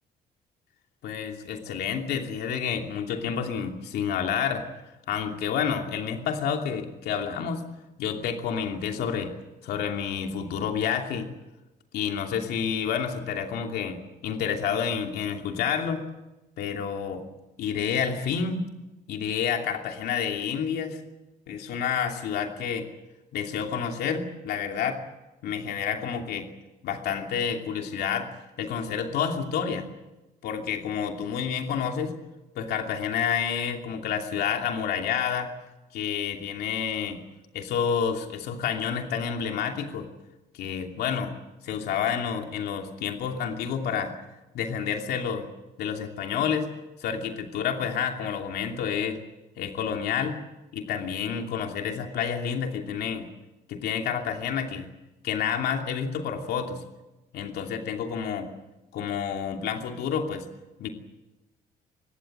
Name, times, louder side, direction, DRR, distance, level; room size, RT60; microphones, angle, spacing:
voice 1, 1.0-4.6 5.1-7.6 8.0-9.3 9.6-11.3 11.9-16.0 16.6-17.2 17.6-18.6 19.1-21.0 21.5-22.9 23.3-25.0 25.4-26.5 26.8-28.3 28.6-29.9 30.4-32.1 32.5-35.5 35.9-37.2 37.5-40.1 40.5-41.3 41.6-44.1 44.5-45.5 45.8-46.7 47.0-49.2 49.6-50.4 50.7-53.3 53.7-54.9 55.2-56.8 57.3-58.5 58.9-60.5 60.8-60.9, left 7 dB, 75° left, 3 dB, 2.8 m, -29 dB
25.0 x 20.5 x 7.9 m, 1.0 s
cardioid pair, 150°, 17 cm